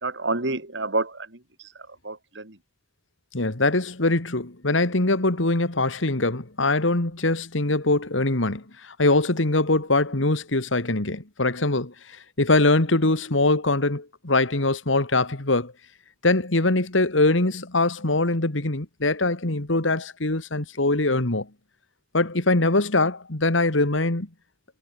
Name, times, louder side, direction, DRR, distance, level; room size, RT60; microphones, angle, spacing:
voice 1, 0.0-1.7 2.0-2.6, right 2 dB, 65° right, 2.8 m, -29 dB
voice 2, 3.3-15.7 16.2-21.5 22.1-24.3, left 2 dB, 80° left, 2.3 m, -22 dB
head